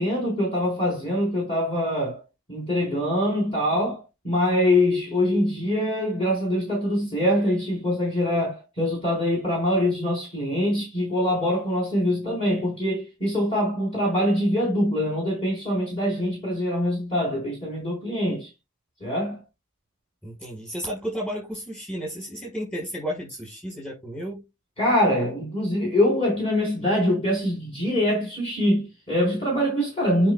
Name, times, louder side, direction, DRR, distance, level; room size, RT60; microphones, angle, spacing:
voice 1, 0.0-2.2 2.5-18.5 19.0-19.4 24.8-30.3, left 1 dB, 25° left, 4.1 m, -24 dB
voice 2, 20.2-24.4, equal, 5° left, 4.9 m, -33 dB
8.8 x 5.8 x 2.3 m
head